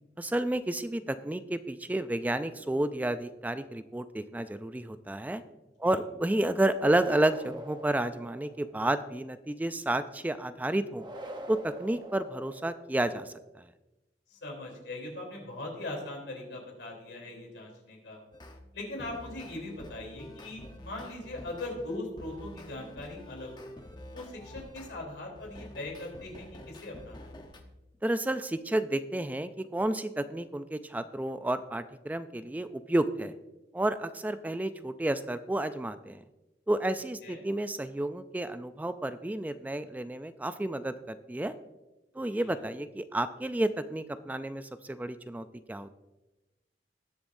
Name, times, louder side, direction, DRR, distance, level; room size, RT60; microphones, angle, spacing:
voice 1, 0.2-5.4 5.8-11.0 11.5-13.6 28.0-33.3 33.7-36.2 36.7-41.6 42.2-45.9, right 1 dB, 10° right, 11 dB, 0.3 m, -31 dB
sound 1, 6.8-8.8 10.9-13.0, right 1 dB, 25° right, 0.9 m, -44 dB
voice 2, 14.3-18.2 18.7-23.7 24.1-27.3 37.2-37.4 42.1-42.6, left 2 dB, 85° left, -1 dB, 3.4 m, -40 dB
sound 2, 18.3-18.6 19.0-25.0 25.3-27.6, left 1 dB, 25° left, 0.9 m, -48 dB
19.5 x 7.0 x 2.6 m, 1.1 s
head